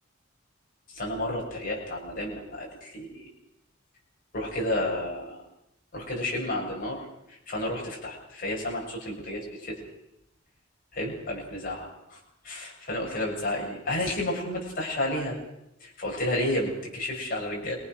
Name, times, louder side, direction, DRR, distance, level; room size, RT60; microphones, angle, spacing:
voice 1, 0.9-3.3 4.3-5.4 5.9-9.8 10.9-12.2 12.4-15.4 15.8-17.8, left 1 dB, 45° left, -2 dB, 7.2 m, -31 dB
27.5 x 22.5 x 6.3 m, 0.84 s
head